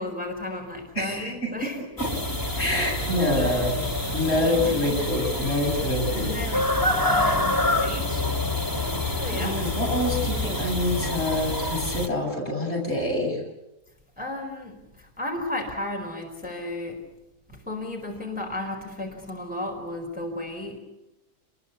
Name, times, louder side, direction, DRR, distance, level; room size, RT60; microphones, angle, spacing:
voice 1, 0.0-1.8 2.5-2.8 3.1-3.6 4.3-4.7 6.1-8.4 9.2-9.6 14.2-17.0 17.5-20.8, left 2 dB, 5° right, 1 dB, 4.6 m, -34 dB
voice 2, 0.9-2.1 2.5-3.8 4.1-6.3 9.2-13.4, left 1 dB, 40° left, -1 dB, 8.4 m, -26 dB
sound 1, 2.0-12.1, left 1 dB, 10° left, 2.2 m, -27 dB
28.5 x 21.5 x 8.3 m, 0.94 s
omnidirectional pair, 1.8 m